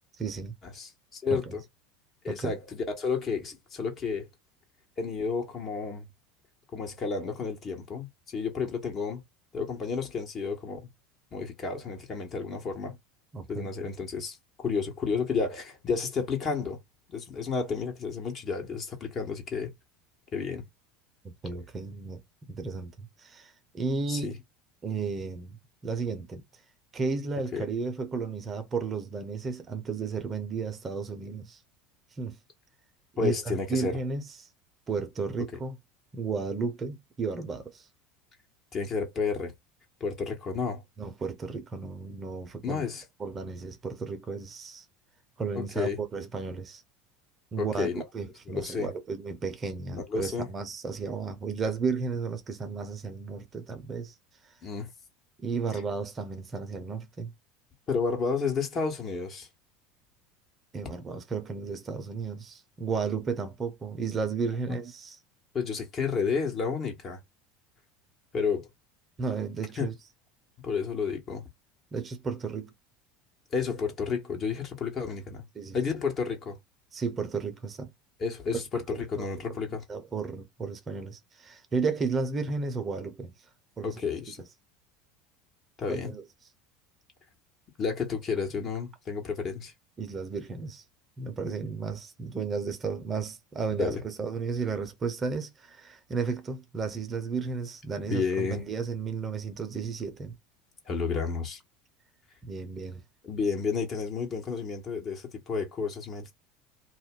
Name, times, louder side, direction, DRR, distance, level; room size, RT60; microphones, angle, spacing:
voice 1, 0.2-0.5 1.3-1.6 2.3-2.5 13.3-13.7 21.4-22.2 22.5-24.3 24.8-25.6 25.8-26.4 26.9-31.6 32.2-32.4 33.1-34.5 34.9-35.8 36.1-37.9 41.0-42.8 43.2-44.9 45.4-46.8 47.5-47.9 48.1-54.1 55.4-57.3 60.7-65.2 69.2-69.9 71.9-72.7 75.6-75.8 76.9-77.9 78.9-79.3 79.9-83.3 83.8-84.0 85.9-86.2 90.0-90.8 91.2-100.4 102.4-103.0, right 4 dB, 30° right, 0.7 m, -33 dB
voice 2, 0.8-1.6 2.2-4.3 5.0-6.1 6.7-9.2 9.5-10.9 11.3-13.0 13.5-16.8 17.1-19.7 20.3-20.6 24.1-24.4 27.5-27.7 33.2-34.0 38.7-39.5 40.0-40.8 42.6-43.0 45.5-46.0 47.6-48.0 48.5-48.9 49.9-50.5 54.6-54.9 57.9-59.5 64.7-64.8 65.5-67.2 68.3-68.7 69.8-69.9 70.6-71.5 73.5-75.4 75.7-76.6 78.2-79.8 83.8-84.4 85.8-86.1 87.8-89.7 93.7-94.0 98.0-98.6 100.8-101.6 103.2-106.3, left 5 dB, 40° left, 1.3 m, -31 dB
2.5 x 2.1 x 3.7 m
hypercardioid pair, 75°, 0 cm